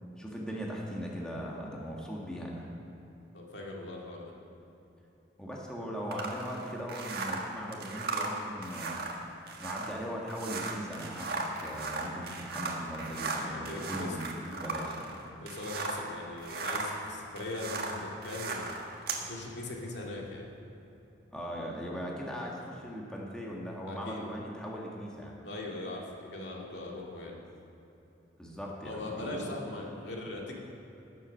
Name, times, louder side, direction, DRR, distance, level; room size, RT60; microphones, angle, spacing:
voice 1, 0.2-2.7 5.4-9.0 9.6-15.1 21.3-25.3 28.4-29.6, equal, 5° left, -3 dB, 1.6 m, -39 dB
voice 2, 3.3-4.3 13.4-14.2 15.4-18.8 19.2-20.5 23.9-24.2 25.4-27.4 28.8-30.5, left 2 dB, 65° left, -1 dB, 2.1 m, -40 dB
sound 1, 6.1-16.1 16.4-19.3, right 3 dB, 55° right, 1.5 m, -37 dB
16.5 x 7.5 x 6.5 m, 3.0 s
head